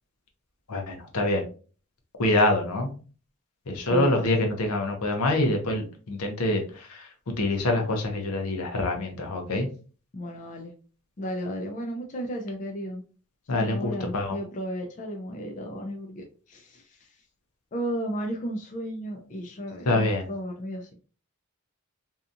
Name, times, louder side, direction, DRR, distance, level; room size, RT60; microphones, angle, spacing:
voice 1, 0.7-1.4 2.2-2.9 3.7-7.0 7.4-9.7 13.5-14.4 19.9-20.2, left 2 dB, 80° left, 3 dB, 0.7 m, -25 dB
voice 2, 3.8-4.4 10.1-10.7 11.2-13.0 13.5-17.1 17.7-20.9, equal, 35° left, 1 dB, 0.4 m, -34 dB
2.7 x 2.3 x 2.5 m, 0.37 s
head